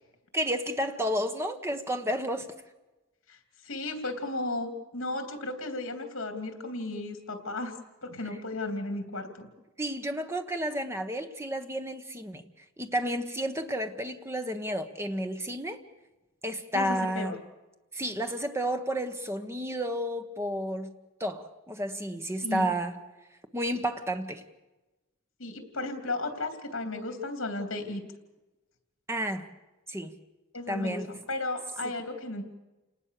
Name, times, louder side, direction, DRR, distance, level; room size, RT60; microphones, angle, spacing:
voice 1, 0.3-2.5 9.8-12.4 12.8-15.8 16.4-17.3 17.9-20.9 21.2-22.9 23.5-24.4 29.1-29.5 29.9-30.1 30.7-31.1, equal, 10° right, 1.3 m, -31 dB
voice 2, 3.6-7.8 8.0-9.5 16.7-17.4 22.4-22.7 25.4-28.0 30.5-32.4, left 2 dB, 70° left, 3.1 m, -34 dB
28.5 x 19.0 x 6.7 m
head